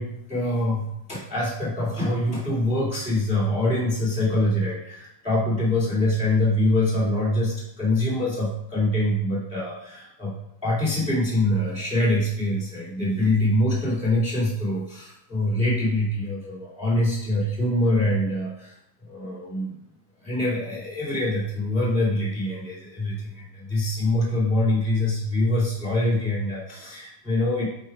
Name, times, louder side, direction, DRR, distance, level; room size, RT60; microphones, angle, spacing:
voice 1, 0.0-10.3 10.6-18.7 19.0-19.8 20.2-27.6, left 1 dB, 5° right, -7 dB, 0.5 m, -24 dB
8.1 x 4.4 x 4.6 m, 0.81 s
omnidirectional pair, 5.7 m